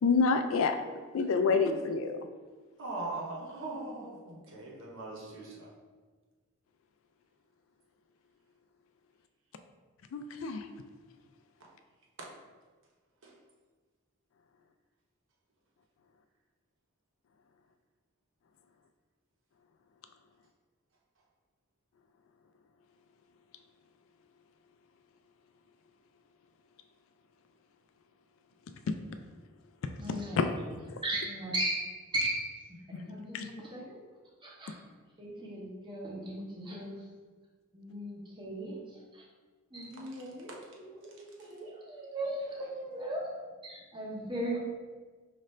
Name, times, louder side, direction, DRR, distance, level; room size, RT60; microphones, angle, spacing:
voice 1, 0.0-0.8 1.1-2.2 10.1-10.7 30.1-30.6 30.9-31.0 32.9-33.0 33.3-33.5, left 4 dB, 65° left, 8 dB, 0.3 m, -28 dB
voice 2, 2.8-5.7 12.2-12.3 13.2-13.3 40.5-40.6, right 2 dB, 60° right, -2 dB, 0.9 m, -40 dB
voice 3, 30.0-30.5 31.0-34.1 34.4-34.8 35.2-37.1 37.7-39.2 39.7-43.3 43.6-44.6, right 1 dB, 20° right, -3 dB, 0.8 m, -37 dB
5.3 x 2.5 x 3.1 m, 1.4 s
head